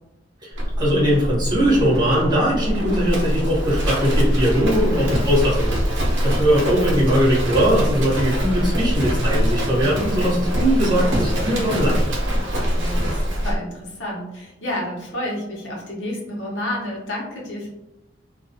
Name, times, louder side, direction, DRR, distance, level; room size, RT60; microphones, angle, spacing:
voice 1, 0.4-12.0, equal, 25° right, -6 dB, 1.1 m, -20 dB
Livestock farm animals working animals, 0.5-13.6, equal, 75° right, 0.6 m, -23 dB
voice 2, 9.6-10.0 12.7-17.7, left 1 dB, 75° left, -3 dB, 0.9 m, -30 dB
2.3 x 2.3 x 2.7 m, 0.90 s
head